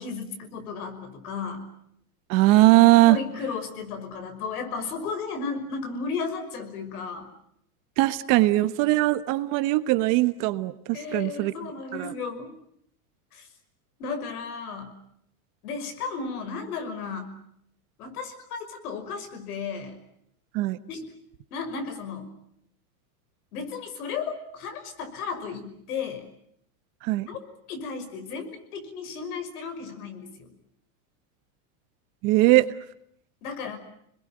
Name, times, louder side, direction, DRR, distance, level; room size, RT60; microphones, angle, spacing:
voice 1, 0.0-1.7 3.1-7.3 10.9-12.5 13.3-13.5 14.0-14.9 15.6-17.3 18.0-20.0 20.9-21.0 21.5-22.3 23.5-26.2 27.3-27.4 27.7-30.5 33.4-33.8, left 5 dB, 80° left, 7 dB, 6.0 m, -34 dB
voice 2, 2.3-3.2 8.0-11.5 11.9-12.1 20.5-20.8 27.0-27.3 32.2-32.7, right 18 dB, 45° right, 12 dB, 1.4 m, -20 dB
27.5 x 21.0 x 9.1 m, 0.72 s
supercardioid pair, 150°, 44 cm